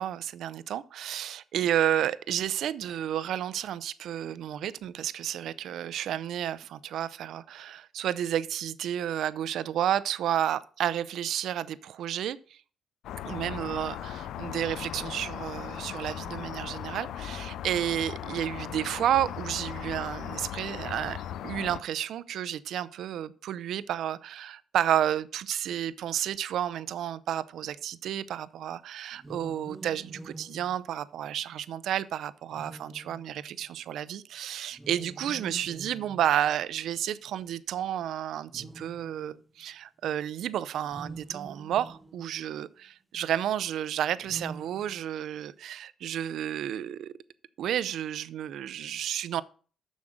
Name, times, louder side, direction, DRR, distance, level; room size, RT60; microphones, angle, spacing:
voice 1, 0.0-12.6 13.2-47.1 47.6-49.4, right 10 dB, 75° right, 0.5 m, -31 dB
sound 1, 13.0-21.8, left 11 dB, 80° left, 0.3 m, -38 dB
sound 2, 29.1-31.6 32.5-33.7 34.7-36.6 37.4-37.5 38.5-39.5 40.8-42.6 44.1-45.4, right 2 dB, 15° right, 0.9 m, -46 dB
7.1 x 6.3 x 6.5 m
cardioid pair, 90°, 0 cm